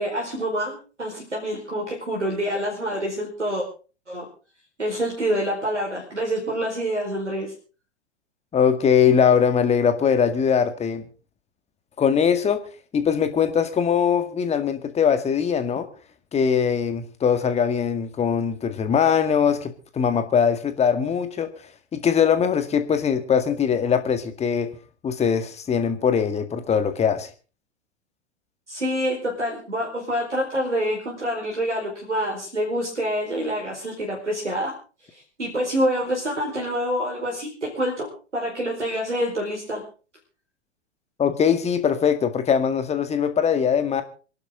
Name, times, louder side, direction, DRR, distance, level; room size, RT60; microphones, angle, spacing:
voice 1, 0.0-3.6 4.1-4.2 4.8-7.5 28.7-34.7 35.1-38.1 38.3-39.8, equal, 85° right, -2 dB, 4.8 m, -26 dB
voice 2, 8.5-11.0 12.0-12.6 12.9-15.9 16.3-21.5 21.9-24.7 25.0-27.3 41.2-44.0, left 7 dB, 20° left, 9 dB, 2.0 m, -21 dB
26.0 x 11.5 x 3.8 m, 0.37 s
figure-of-eight pair, 100°, 34 cm